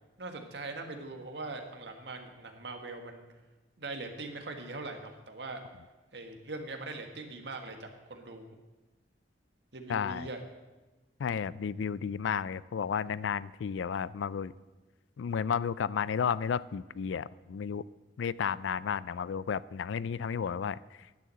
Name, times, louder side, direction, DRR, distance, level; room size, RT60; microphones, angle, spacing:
voice 1, 0.2-3.3 3.8-5.6 6.1-8.4 9.7-10.4, right 3 dB, 65° right, 4 dB, 1.6 m, -41 dB
voice 2, 9.9-10.3 11.2-14.5 15.2-17.8 18.2-21.1, left 7 dB, 85° left, 19 dB, 0.4 m, -32 dB
10.5 x 9.5 x 7.6 m, 1.2 s
head